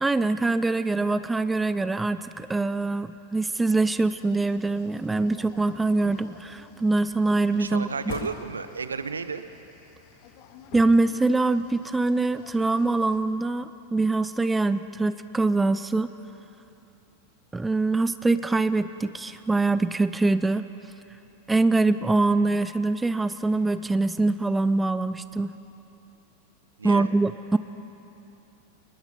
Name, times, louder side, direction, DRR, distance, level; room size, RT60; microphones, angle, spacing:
voice 1, 0.0-7.9 10.7-16.1 17.5-20.7 21.5-25.5 26.8-27.6, right 3 dB, 10° right, 14 dB, 0.6 m, -24 dB
sound 1, 3.9-13.2, left 7 dB, 45° left, 1.8 m, -48 dB
voice 2, 7.6-9.4 26.8-27.1, right 5 dB, 75° right, 11 dB, 1.0 m, -32 dB
28.0 x 20.5 x 5.4 m, 2.9 s
figure-of-eight pair, 90°, 0 cm